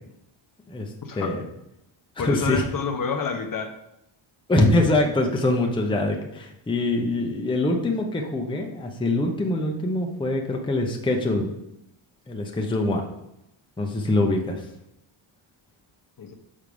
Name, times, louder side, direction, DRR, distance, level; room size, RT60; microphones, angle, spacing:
voice 1, 0.7-1.4 2.2-2.6 4.5-11.5 12.3-13.0 13.8-14.6, left 2 dB, 10° left, 1 dB, 0.7 m, -24 dB
voice 2, 2.2-3.7 16.2-16.3, left 5 dB, 40° left, 5 dB, 0.8 m, -28 dB
6.4 x 5.0 x 5.3 m, 0.83 s
wide cardioid pair, 150°, 50 cm